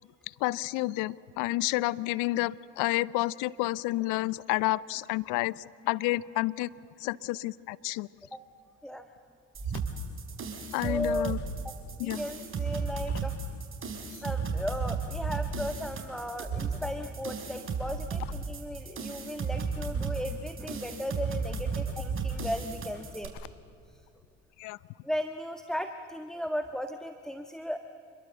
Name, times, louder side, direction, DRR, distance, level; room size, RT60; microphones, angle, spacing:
voice 1, 0.4-6.7 7.0-8.1 10.7-11.4 12.0-12.2 24.6-24.8, left 19 dB, 70° left, 20 dB, 0.7 m, -30 dB
sound 1, 9.5-23.3, right 5 dB, 40° right, 5.3 m, -34 dB
voice 2, 10.8-11.4 11.6-13.3 14.2-23.3 23.9-24.0 25.0-27.8, equal, ahead, 7 dB, 1.4 m, -36 dB
27.0 x 22.0 x 8.0 m, 2.6 s
hypercardioid pair, 70°, 32 cm